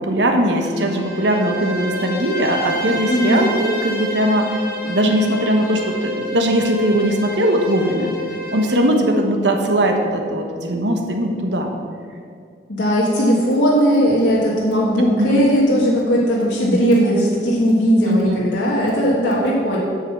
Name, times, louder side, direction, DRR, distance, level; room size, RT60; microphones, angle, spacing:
voice 1, 0.0-4.5 4.8-8.2 8.5-11.7 15.2-15.5 18.0-18.5, equal, 80° right, 3 dB, 1.2 m, -19 dB
Bowed string instrument, 0.6-8.9, equal, 55° left, 1.6 m, -29 dB
voice 2, 3.1-3.6 12.7-19.8, equal, 85° left, -5 dB, 1.5 m, -17 dB
8.0 x 5.7 x 7.3 m, 2.2 s
head